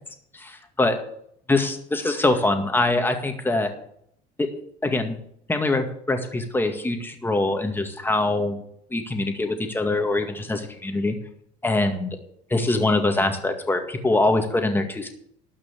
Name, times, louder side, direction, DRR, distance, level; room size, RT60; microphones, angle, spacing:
voice 1, 0.3-1.0 1.5-3.7 4.4-4.5 4.8-5.2 5.5-8.6 8.9-11.2 11.6-12.2 12.5-15.1, left 2 dB, 10° left, 5 dB, 2.1 m, -23 dB
12.5 x 6.2 x 8.9 m, 0.69 s
cardioid pair, 115°, 19 cm